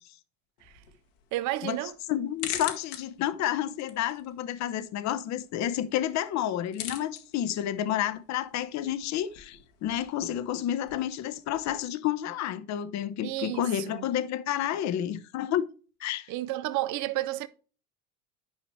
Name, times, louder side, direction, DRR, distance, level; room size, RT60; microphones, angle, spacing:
sound 1, 0.6-11.8, left 9 dB, 75° left, 1.4 m, -45 dB
voice 1, 1.3-2.0 13.2-14.1 16.3-17.5, right 16 dB, 50° right, 0.8 m, -31 dB
voice 2, 2.1-15.7 16.0-16.3, left 11 dB, 50° left, 0.9 m, -30 dB
10.5 x 5.1 x 3.1 m
hypercardioid pair, 75°, 37 cm